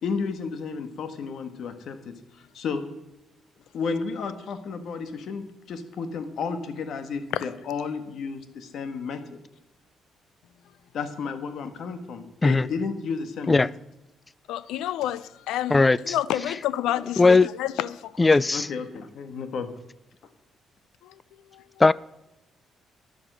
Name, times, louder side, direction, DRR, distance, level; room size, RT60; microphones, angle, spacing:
voice 1, 0.0-2.1 2.5-2.8 3.7-9.2 10.9-13.7 18.5-19.7, left 5 dB, 70° left, 1.5 m, -32 dB
voice 2, 14.5-18.3 21.0-21.7, left 12 dB, 90° left, 0.5 m, -30 dB
voice 3, 15.7-16.1 17.2-17.5 18.2-18.7 21.8-21.9, left 3 dB, 20° left, 0.3 m, -18 dB
10.5 x 8.1 x 7.6 m
cardioid pair, 90°, 0 cm